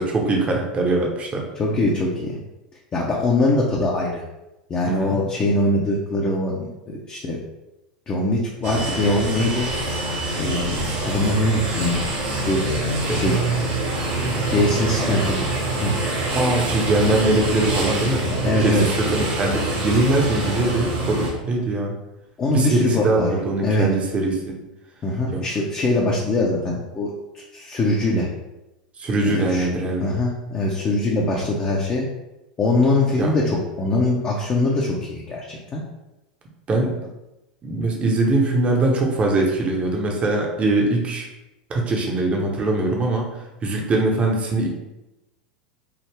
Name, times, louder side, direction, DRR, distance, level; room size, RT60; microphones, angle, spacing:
voice 1, 0.0-1.5 4.9-5.2 13.1-13.2 15.1-15.2 16.3-21.9 22.5-24.5 25.3-25.4 29.0-30.2 33.2-33.3 36.7-36.9 37.6-41.3 41.7-43.3 43.6-44.7, right 2 dB, 30° right, 0 dB, 0.7 m, -22 dB
voice 2, 1.6-2.4 2.9-4.2 4.7-7.4 8.1-9.7 10.4-12.0 12.5-12.6 13.1-13.4 14.1-15.4 15.8-15.9 18.3-18.8 22.4-23.3 23.6-23.9 25.0-28.3 29.2-29.7 30.0-32.1 32.6-35.8, left 2 dB, 25° left, -3 dB, 0.6 m, -22 dB
sound 1, 8.6-21.3, right 2 dB, 55° right, 1.1 m, -25 dB
3.5 x 2.0 x 3.2 m, 0.97 s
hypercardioid pair, 85°, 4 cm